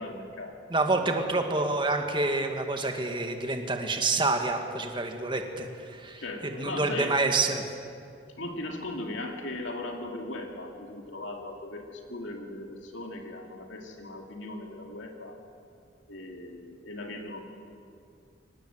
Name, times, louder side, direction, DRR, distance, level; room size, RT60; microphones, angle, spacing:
voice 1, 0.0-1.2 6.2-7.2 8.4-15.3 16.1-17.4, left 2 dB, 80° left, 2 dB, 2.4 m, -38 dB
voice 2, 0.7-6.2 6.6-7.6, right 3 dB, 25° right, 4 dB, 1.8 m, -27 dB
24.0 x 19.0 x 7.9 m, 2.4 s
head